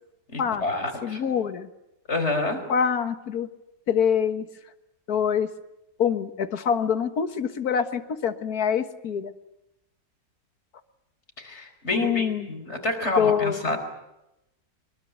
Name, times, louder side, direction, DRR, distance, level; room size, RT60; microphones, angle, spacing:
voice 1, 0.3-1.2 2.1-2.6 11.4-13.8, left 2 dB, 40° left, 6 dB, 5.0 m, -28 dB
voice 2, 1.0-1.7 2.7-3.5 3.9-4.5 5.1-5.5 6.0-9.3 11.9-12.5 13.2-13.7, left 7 dB, 65° left, 10 dB, 2.0 m, -25 dB
24.0 x 22.0 x 9.5 m, 0.89 s
omnidirectional pair, 1.7 m